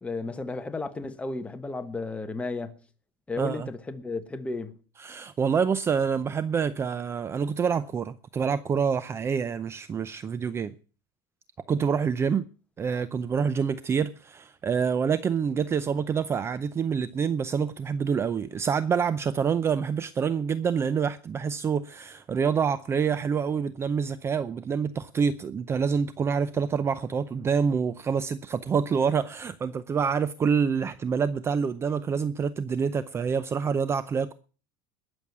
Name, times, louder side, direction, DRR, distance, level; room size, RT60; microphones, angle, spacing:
voice 1, 0.0-2.8 3.3-4.8, left 3 dB, 10° left, 1.3 m, -33 dB
voice 2, 3.4-3.7 5.0-10.7 11.7-12.5 12.8-34.3, right 6 dB, 25° right, 0.6 m, -27 dB
20.0 x 7.1 x 6.0 m
supercardioid pair, 125°, 11 cm